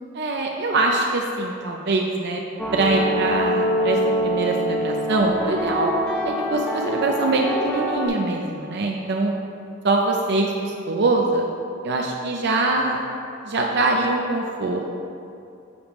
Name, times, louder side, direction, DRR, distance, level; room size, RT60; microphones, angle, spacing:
voice 1, 0.1-2.4 2.7-5.9 6.2-9.3 9.8-11.4 11.8-13.0 13.4-14.8, right 2 dB, 55° right, 1 dB, 0.5 m, -23 dB
sound 1, 2.6-8.1, equal, 5° left, 1.1 m, -25 dB
10.0 x 5.1 x 3.1 m, 2.6 s
head